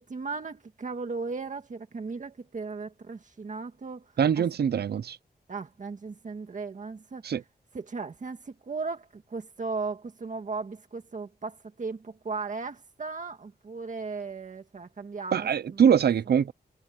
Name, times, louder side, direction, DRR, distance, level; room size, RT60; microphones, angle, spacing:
voice 1, 0.0-4.4 5.5-7.3 7.7-15.9, right 4 dB, 50° right, 1.9 m, -36 dB
voice 2, 4.2-5.2 7.2-7.4 15.3-16.5, right 8 dB, 75° right, 0.6 m, -23 dB
wide cardioid pair, 155°, 17 cm